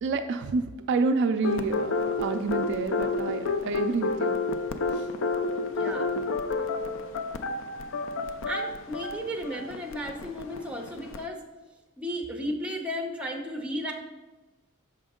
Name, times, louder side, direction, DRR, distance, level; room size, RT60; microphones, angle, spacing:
voice 1, 0.0-4.4 4.9-5.1, right 4 dB, 55° right, 7 dB, 0.3 m, -28 dB
sound 1, 1.4-11.2, left 3 dB, 60° left, 0.4 m, -30 dB
voice 2, 5.8-6.1 8.5-11.4 12.0-13.9, equal, 5° right, 1 dB, 0.7 m, -34 dB
6.2 x 5.1 x 3.6 m, 1.1 s
head